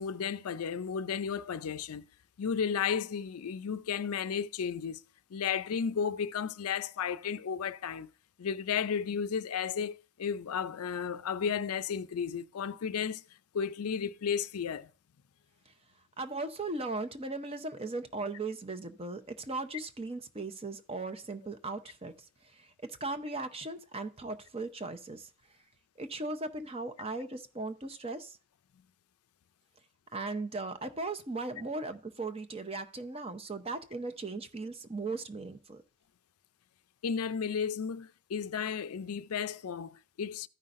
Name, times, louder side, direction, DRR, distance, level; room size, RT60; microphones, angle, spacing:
voice 1, 0.0-2.1 2.4-5.0 5.3-8.1 8.4-13.2 13.5-14.9 37.0-40.5, left 7 dB, 80° left, 0.5 m, -33 dB
voice 2, 16.2-22.1 22.4-25.3 26.0-28.4 30.1-35.8, right 3 dB, 25° right, 0.7 m, -38 dB
14.5 x 5.6 x 2.5 m
head